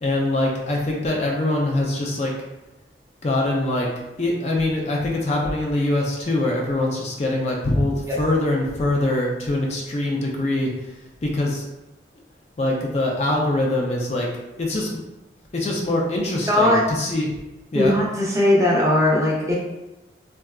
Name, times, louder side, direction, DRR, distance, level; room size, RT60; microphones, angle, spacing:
voice 1, 0.0-2.3 3.2-3.9 4.2-10.7 11.2-11.6 12.6-14.3 14.6-14.9 15.5-17.3 17.7-17.9, left 1 dB, 35° left, -2 dB, 0.4 m, -23 dB
voice 2, 16.4-16.8 17.7-19.6, left 1 dB, 15° right, -4 dB, 0.5 m, -19 dB
3.7 x 2.3 x 2.3 m, 0.98 s
head